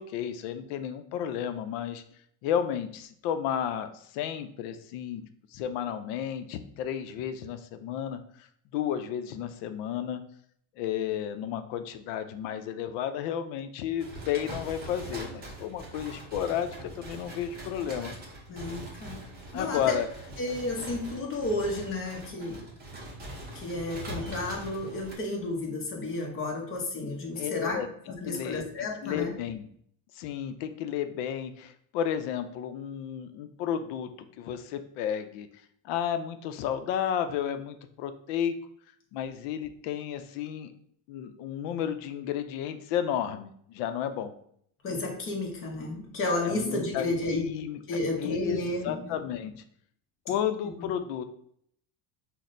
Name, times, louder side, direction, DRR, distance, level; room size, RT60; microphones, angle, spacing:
voice 1, 0.0-2.0 2.4-8.5 8.7-10.2 10.8-18.1 19.5-20.1 27.4-27.9 28.2-29.7 30.1-35.5 35.8-38.5 39.1-40.7 41.1-44.3 46.4-47.0 47.3-47.8 48.2-49.6 50.3-51.2, left 9 dB, 75° left, 9 dB, 0.5 m, -32 dB
sound 1, 14.0-25.1, right 2 dB, 25° right, 0.6 m, -42 dB
voice 2, 18.5-19.2 19.5-20.0 20.4-22.6 23.5-27.8 28.2-29.4 44.8-47.4 47.9-49.2, left 2 dB, 30° left, 0 dB, 0.7 m, -32 dB
5.9 x 2.1 x 2.5 m, 0.65 s
cardioid pair, 170°, 43 cm